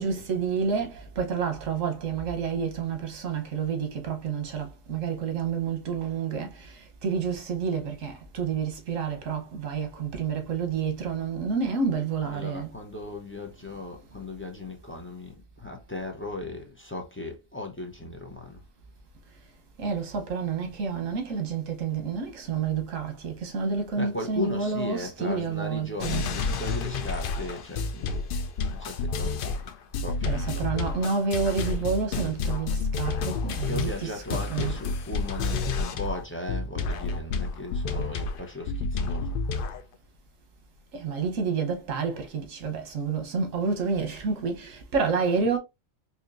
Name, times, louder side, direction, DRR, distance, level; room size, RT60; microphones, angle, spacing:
voice 1, 0.0-12.7 19.8-26.3 30.2-34.8 40.9-45.6, right 5 dB, 90° right, 1.3 m, -29 dB
voice 2, 12.2-18.6 21.0-21.1 24.0-28.2 28.7-29.6 30.0-30.7 33.6-39.4, left 2 dB, 15° left, 0.4 m, -37 dB
sound 1, 26.0-36.2 36.5-39.8, left 4 dB, 60° left, 0.6 m, -30 dB
4.2 x 2.8 x 2.5 m
omnidirectional pair, 1.3 m